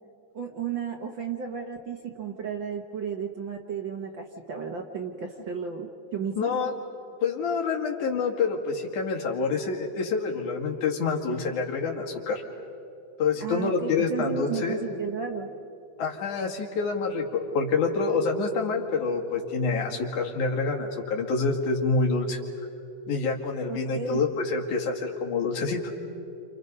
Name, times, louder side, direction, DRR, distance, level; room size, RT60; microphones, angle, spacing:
voice 1, 0.3-6.5 13.4-15.5 23.7-24.2, right 6 dB, 55° right, 3 dB, 1.4 m, -33 dB
voice 2, 6.4-6.7 7.2-12.4 13.2-14.8 16.0-22.4 23.1-25.8, left 4 dB, 90° left, 0 dB, 3.7 m, -27 dB
29.5 x 27.5 x 5.5 m, 2.8 s
omnidirectional pair, 3.4 m